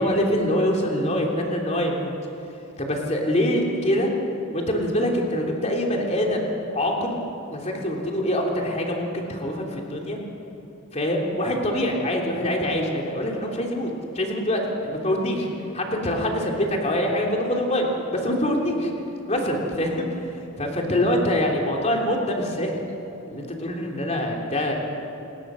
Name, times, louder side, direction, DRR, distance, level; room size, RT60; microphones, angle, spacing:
voice 1, 0.0-2.1 2.8-4.1 4.5-7.2 7.5-10.2 10.9-15.5 15.7-17.9 18.1-18.9 19.3-20.1 20.6-22.8 23.3-24.8, left 1 dB, 35° left, 0 dB, 3.3 m, -24 dB
28.5 x 19.5 x 6.4 m, 3.0 s
head